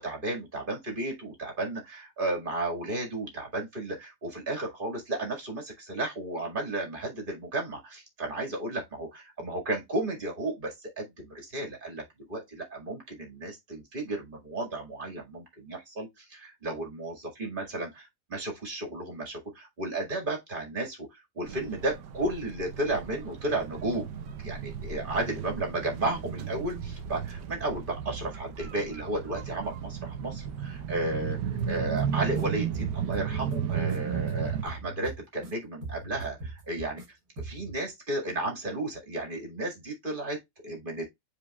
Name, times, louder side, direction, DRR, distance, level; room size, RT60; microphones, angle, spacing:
voice 1, 0.0-31.4 31.7-37.0 37.4-41.0, right 2 dB, 30° right, 2.1 m, -33 dB
sound 1, 21.4-34.6, right 8 dB, 85° right, 1.4 m, -34 dB
sound 2, 31.6-32.4 32.7-35.5 35.8-37.1 37.4-37.8, right 2 dB, 60° right, 2.1 m, -40 dB
8.7 x 4.7 x 2.3 m
omnidirectional pair, 1.8 m